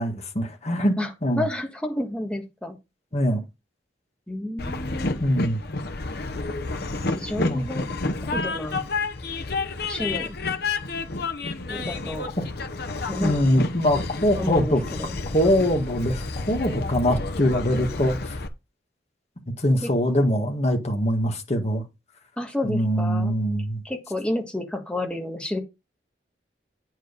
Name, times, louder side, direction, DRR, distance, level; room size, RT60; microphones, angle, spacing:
voice 1, 0.0-1.0 1.2-1.5 3.1-3.4 5.2-5.6 7.4-7.7 13.2-14.8 15.3-18.4 19.6-21.8 22.6-23.8, equal, 35° left, 1.7 m, -23 dB
voice 2, 1.4-2.8 4.3-5.2 6.7-6.8 7.2-7.9 8.2-8.8 9.9-10.4 11.7-12.3 13.1-13.3 14.4-15.1 19.8-19.9 22.4-23.3 23.8-25.6, left 1 dB, 5° left, 1.5 m, -30 dB
Train, 4.6-18.5, left 3 dB, 60° left, 0.9 m, -30 dB
8.9 x 4.7 x 5.2 m
head